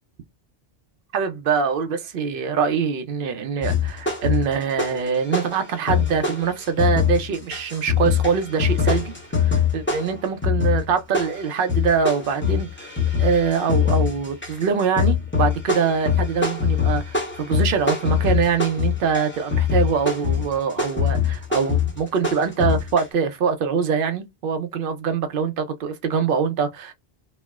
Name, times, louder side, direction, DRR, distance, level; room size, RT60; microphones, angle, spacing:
voice 1, 1.1-12.9 13.2-26.9, right 6 dB, 60° right, 0.7 m, -24 dB
sound 1, 3.6-5.1 5.3-23.0, left 7 dB, 10° left, 0.8 m, -23 dB
4.2 x 2.0 x 2.3 m
omnidirectional pair, 1.1 m